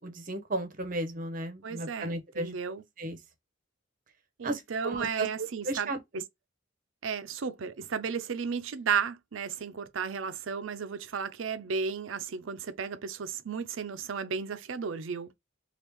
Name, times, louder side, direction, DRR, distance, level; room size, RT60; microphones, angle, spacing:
voice 1, 0.0-2.5 3.0-3.2 4.4-6.0, right 2 dB, 45° right, 0.8 m, -34 dB
voice 2, 1.6-2.8 4.4-6.2 7.0-15.3, right 6 dB, 85° right, 0.5 m, -34 dB
3.0 x 2.4 x 3.5 m
head